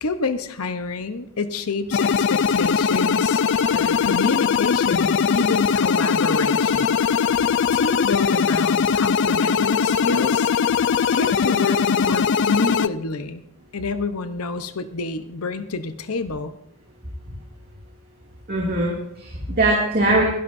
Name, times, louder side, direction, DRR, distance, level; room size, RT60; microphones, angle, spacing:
voice 1, 0.0-3.4 3.7-7.0 7.7-10.5 11.1-13.4 13.7-16.6, left 3 dB, 80° left, 10 dB, 0.9 m, -28 dB
sound 1, 1.9-12.9, left 6 dB, 55° left, 0.4 m, -20 dB
voice 2, 18.5-20.2, right 2 dB, 45° right, -3 dB, 2.5 m, -21 dB
23.0 x 11.5 x 2.7 m, 0.76 s
head